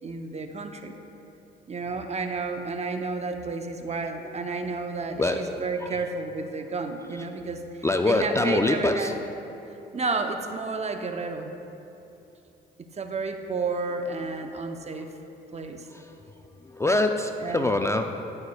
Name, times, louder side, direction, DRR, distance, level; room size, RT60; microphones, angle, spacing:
voice 1, 0.0-0.9 1.7-7.6 8.0-9.1 9.9-11.5 13.0-15.1 15.5-15.9 17.4-17.7, right 4 dB, 35° right, 6 dB, 0.8 m, -31 dB
voice 2, 5.1-6.0 7.2-7.3 7.8-9.1 14.2-14.3 14.9-15.1 15.9-16.1 16.6-18.5, left 2 dB, 15° left, 5 dB, 0.4 m, -26 dB
17.5 x 6.5 x 2.3 m, 2.9 s
supercardioid pair, 70°, 20 cm